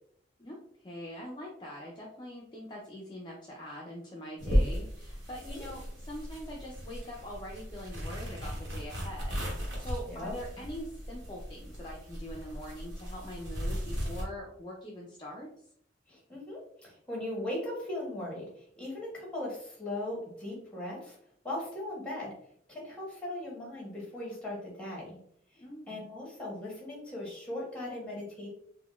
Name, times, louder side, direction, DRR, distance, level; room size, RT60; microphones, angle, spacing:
voice 1, 0.4-15.5 25.6-26.1, equal, 25° left, -2 dB, 0.4 m, -43 dB
sound 1, 4.4-14.2, equal, 65° right, 1.0 m, -35 dB
voice 2, 9.9-10.3 16.1-21.2 21.4-22.3 22.7-25.1 25.9-28.5, left 1 dB, 5° left, -4 dB, 1.2 m, -38 dB
3.9 x 2.1 x 2.3 m, 0.65 s
head